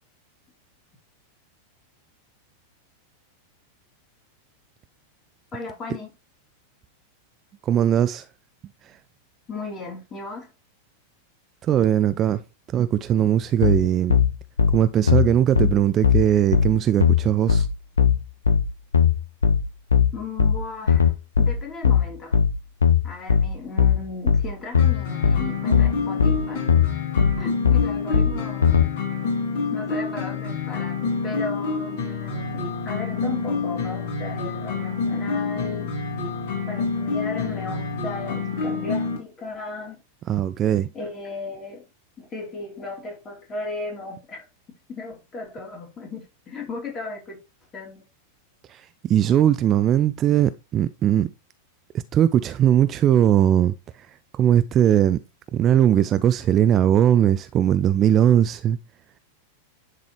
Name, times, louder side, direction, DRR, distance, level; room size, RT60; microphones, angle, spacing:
voice 1, 5.5-6.1 9.5-10.5 20.1-22.4 23.0-26.7 27.4-28.9 29.7-35.9 36.7-40.0 40.9-41.9 42.2-44.4 44.9-47.4 47.7-48.0, left 3 dB, 25° left, 2.9 m, -36 dB
voice 2, 7.6-8.3 11.6-12.4 12.7-14.2 14.7-17.7 40.3-40.9 48.7-51.3 52.1-53.7 54.3-55.2 55.5-58.8, right 10 dB, 30° right, 0.4 m, -19 dB
sound 1, 13.6-28.9, left 7 dB, 75° left, 0.7 m, -19 dB
sound 2, 24.8-39.2, left 4 dB, 50° left, 3.3 m, -28 dB
10.5 x 3.8 x 3.1 m
figure-of-eight pair, 90°, 0 cm